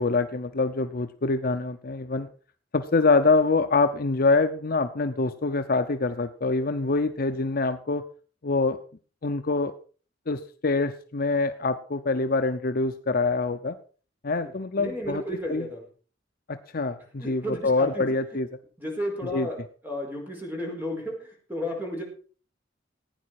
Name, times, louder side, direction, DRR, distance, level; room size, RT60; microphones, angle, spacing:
voice 1, 0.0-2.3 2.7-8.0 8.4-8.8 9.2-9.7 10.3-13.8 14.2-15.2 15.5-15.7 16.5-18.5 19.3-19.5, left 3 dB, 50° left, 8 dB, 0.7 m, -25 dB
voice 2, 14.4-15.8 17.2-18.0 18.8-19.6 19.8-22.0, equal, 10° right, 0 dB, 4.7 m, -33 dB
15.5 x 9.6 x 4.8 m, 0.40 s
head